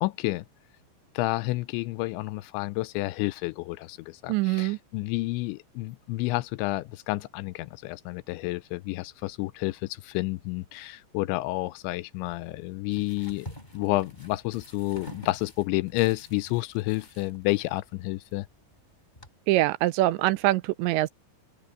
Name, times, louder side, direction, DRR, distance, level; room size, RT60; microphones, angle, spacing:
voice 1, 0.0-0.4 1.2-13.5 13.7-18.5, left 20 dB, 85° left, 2.8 m, -30 dB
voice 2, 4.3-4.8 19.5-21.1, right 17 dB, 85° right, 2.7 m, -24 dB
sound 1, 12.2-19.3, left 1 dB, 10° left, 6.1 m, -48 dB
open air
omnidirectional pair, 5.4 m